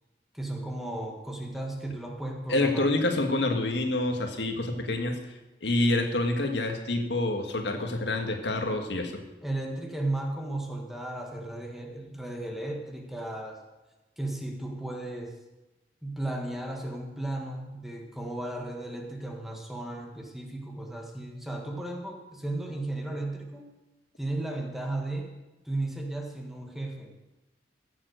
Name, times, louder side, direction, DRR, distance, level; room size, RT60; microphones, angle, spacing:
voice 1, 0.3-2.9 9.4-13.6 14.2-15.3 16.0-23.6 24.2-25.3 25.7-27.1, right 1 dB, ahead, 1 dB, 1.6 m, -35 dB
voice 2, 2.5-5.2 5.6-9.2, left 2 dB, 85° left, 4 dB, 1.7 m, -27 dB
15.5 x 7.4 x 6.5 m, 1.1 s
head